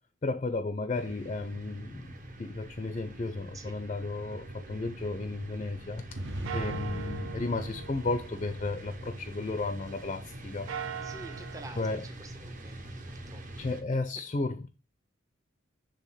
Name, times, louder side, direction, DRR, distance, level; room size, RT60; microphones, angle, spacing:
voice 1, 0.2-6.0 6.5-10.7 11.8-12.0 13.6-14.7, left 3 dB, 35° left, 0.4 m, -33 dB
sound 1, 0.9-13.8, right 1 dB, 40° right, 1.0 m, -45 dB
sound 2, 4.3-6.1 6.5-10.0 10.5-11.7, right 7 dB, 85° right, 0.5 m, -43 dB
sound 3, 6.1-9.7, right 1 dB, 65° right, 1.2 m, -40 dB
voice 2, 11.0-13.7 14.2-14.3, right 2 dB, 15° right, 0.5 m, -49 dB
6.3 x 3.4 x 5.5 m
head